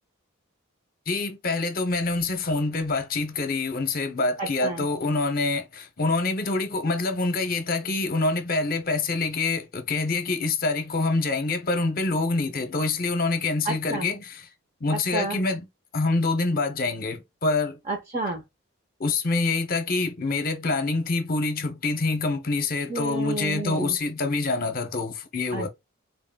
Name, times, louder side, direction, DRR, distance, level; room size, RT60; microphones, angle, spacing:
voice 1, 1.1-14.2 14.8-15.6 15.9-17.8 19.0-25.7, left 3 dB, 40° left, 0.7 m, -26 dB
voice 2, 4.4-4.9 13.6-14.1 14.9-15.4 17.8-18.4 22.9-24.0 25.5-25.7, right 2 dB, 30° right, 0.9 m, -31 dB
4.0 x 3.6 x 2.2 m
head